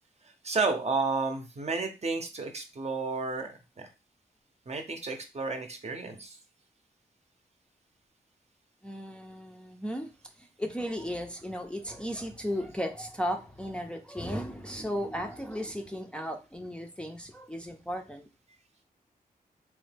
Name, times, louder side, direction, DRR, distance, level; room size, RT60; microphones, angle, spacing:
voice 1, 0.4-3.9 4.7-6.4, right 4 dB, 45° right, 5 dB, 0.7 m, -32 dB
voice 2, 8.8-10.1 10.4-18.3, equal, 5° left, 2 dB, 0.5 m, -35 dB
3.1 x 2.2 x 3.3 m, 0.29 s
cardioid pair, 65°, 16 cm